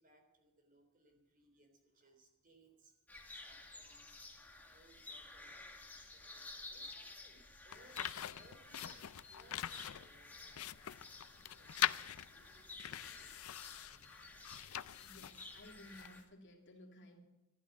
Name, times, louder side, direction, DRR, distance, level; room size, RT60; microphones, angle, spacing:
voice 1, 0.0-4.2 4.5-15.1, right 2 dB, 40° right, 4 dB, 3.6 m, -68 dB
sound 1, 3.1-16.2, left 2 dB, 10° left, 1.9 m, -53 dB
sound 2, 7.7-16.2, left 11 dB, 80° left, 0.5 m, -43 dB
voice 2, 15.0-17.2, left 1 dB, 60° left, 1 dB, 2.8 m, -57 dB
13.5 x 11.5 x 8.2 m, 1.0 s
head